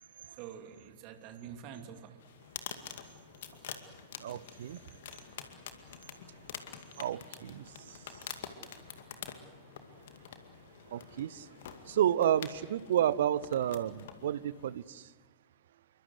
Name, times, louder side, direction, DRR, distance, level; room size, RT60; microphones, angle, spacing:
voice 1, 0.3-2.3 3.5-3.7 5.6-6.5 7.7-7.8 9.7-10.1, right 8 dB, 45° right, 2.7 m, -49 dB
sound 1, 2.2-14.8, left 8 dB, 60° left, 2.2 m, -47 dB
voice 2, 4.2-4.8 7.0-8.3 10.9-11.5 11.9-15.1, right 11 dB, 60° right, 0.8 m, -31 dB
28.0 x 23.5 x 8.1 m
figure-of-eight pair, 90°, 0 cm